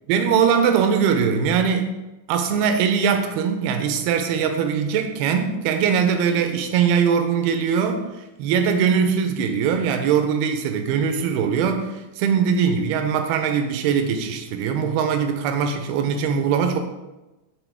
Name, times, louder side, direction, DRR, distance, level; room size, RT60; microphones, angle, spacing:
voice 1, 0.1-1.9 2.3-8.0 8.4-16.8, right 7 dB, 85° right, 6 dB, 2.4 m, -21 dB
13.0 x 4.4 x 3.5 m, 1.0 s
omnidirectional pair, 5.1 m